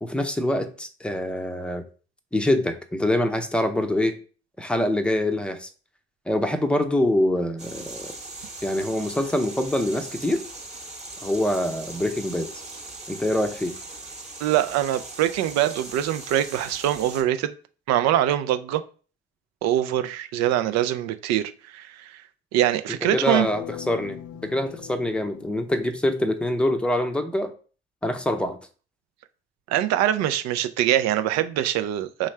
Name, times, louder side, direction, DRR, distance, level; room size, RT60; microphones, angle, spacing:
voice 1, 0.0-1.8 2.3-4.2 4.6-5.7 6.3-8.1 8.6-10.4 11.2-12.5 13.1-13.7 23.1-27.5 28.0-28.6, left 1 dB, 5° left, 0.6 m, -25 dB
sound 1, 7.6-17.2, right 2 dB, 20° right, 1.1 m, -40 dB
voice 2, 14.4-17.5 17.9-18.8 19.6-22.2 22.5-23.5 29.7-32.3, right 12 dB, 60° right, 0.5 m, -23 dB
sound 2, 23.2-26.3, left 13 dB, 50° left, 0.4 m, -40 dB
3.6 x 3.1 x 3.2 m
hypercardioid pair, 55°, 31 cm